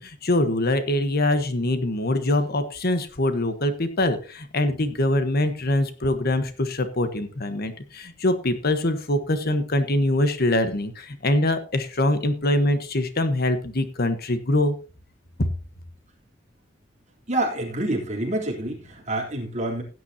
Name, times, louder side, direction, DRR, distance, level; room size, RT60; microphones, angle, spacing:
voice 1, 0.0-14.7 15.4-15.5, left 1 dB, 55° left, 9 dB, 1.3 m, -23 dB
voice 2, 17.3-19.8, right 1 dB, 40° right, -1 dB, 3.6 m, -27 dB
16.5 x 9.4 x 2.9 m, 0.34 s
head